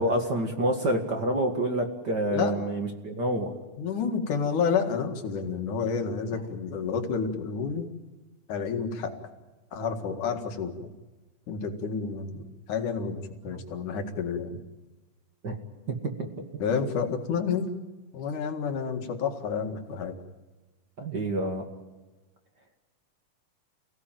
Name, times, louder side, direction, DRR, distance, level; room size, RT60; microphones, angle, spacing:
voice 1, 0.0-3.5 13.4-13.6 15.4-15.6 15.9-16.3 21.0-21.7, right 1 dB, 40° right, 4 dB, 2.2 m, -28 dB
voice 2, 3.8-7.9 8.5-9.2 9.7-10.9 11.5-14.6 16.6-17.7 18.1-20.2, left 6 dB, 75° left, 5 dB, 3.4 m, -30 dB
29.0 x 17.0 x 9.1 m, 1.2 s
omnidirectional pair, 3.6 m